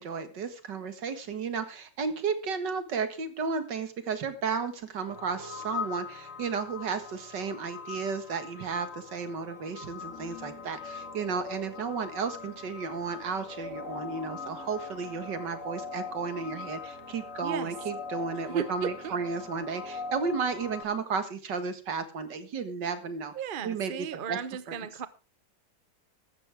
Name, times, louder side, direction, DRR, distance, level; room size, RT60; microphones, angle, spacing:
voice 1, 0.0-23.3 23.6-24.4 24.7-24.8, right 5 dB, 65° right, 2.2 m, -33 dB
sound 1, 5.1-20.8, left 5 dB, 45° left, 2.3 m, -41 dB
voice 2, 17.4-17.7 18.5-19.2 23.3-25.1, right 8 dB, 45° right, 0.6 m, -35 dB
15.0 x 13.0 x 3.5 m
omnidirectional pair, 2.0 m